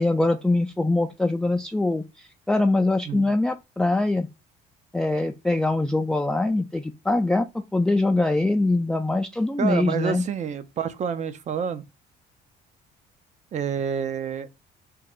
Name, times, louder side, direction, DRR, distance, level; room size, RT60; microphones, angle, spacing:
voice 1, 0.0-4.3 4.9-7.5 7.7-10.2, left 2 dB, 5° left, 0.3 m, -23 dB
voice 2, 9.6-11.8 13.5-14.5, right 7 dB, 45° right, 0.6 m, -28 dB
3.7 x 2.2 x 4.3 m
cardioid pair, 110°, 17 cm